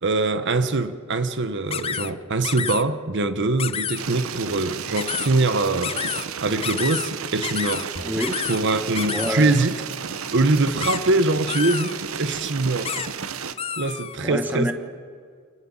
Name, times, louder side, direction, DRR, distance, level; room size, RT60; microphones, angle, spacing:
voice 1, 0.0-6.0 6.4-7.9 8.4-9.8 10.3-12.9 13.8-14.7, right 2 dB, 60° right, 0.9 m, -23 dB
sound 1, 1.7-2.1 2.4-2.8 3.6-4.0 5.0-5.3 5.8-6.3 6.6-7.1 7.4-7.8 8.2-8.6 9.0-9.4 10.8-11.0 11.5-11.9 12.8-13.1 13.6-14.2, left 7 dB, 30° left, 0.5 m, -29 dB
sound 2, 4.0-13.5, right 6 dB, 85° right, 1.0 m, -33 dB
Drum, 7.9-9.9, equal, 70° left, 3.3 m, -45 dB
voice 2, 8.0-8.4 9.1-9.6 14.2-14.7, equal, 10° right, 1.4 m, -27 dB
28.5 x 11.0 x 8.9 m
head